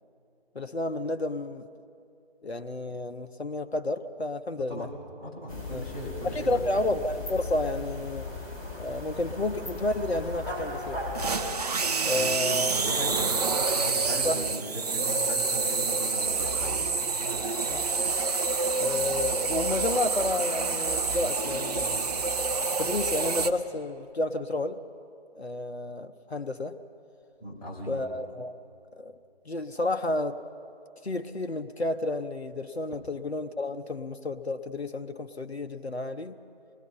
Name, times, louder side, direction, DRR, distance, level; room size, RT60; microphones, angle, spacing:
voice 1, 0.5-1.7 2.4-4.9 5.7-5.8 6.2-8.3 8.8-11.0 12.0-12.8 14.2-14.4 17.7-17.8 18.7-24.8 25.4-26.8 27.9-28.6 29.0-29.1 29.5-30.4 31.0-36.4, left 2 dB, 90° left, 7 dB, 0.9 m, -31 dB
voice 2, 4.7-6.8 12.2-12.4 12.8-13.3 13.8-16.8 27.4-28.0, equal, 35° left, -5 dB, 6.6 m, -38 dB
sound 1, 5.5-11.5, left 2 dB, 20° left, 2.9 m, -37 dB
sound 2, 11.1-23.5, right 4 dB, 40° right, 0.8 m, -28 dB
25.5 x 20.0 x 5.4 m, 2.6 s
figure-of-eight pair, 145°, 31 cm